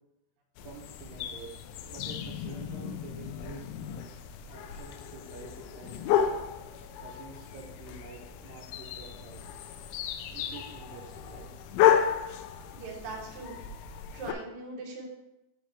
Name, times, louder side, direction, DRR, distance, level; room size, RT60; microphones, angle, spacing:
sound 1, 0.6-14.3, left 9 dB, 85° left, 2.8 m, -32 dB
voice 1, 0.6-1.5 1.9-3.7 4.5-6.0 7.0-9.5 10.3-11.5, right 4 dB, 90° right, -2 dB, 2.3 m, -48 dB
voice 2, 12.7-13.6 14.1-15.1, right 3 dB, 65° right, -3 dB, 1.8 m, -40 dB
7.3 x 3.2 x 5.8 m, 0.91 s
omnidirectional pair, 5.6 m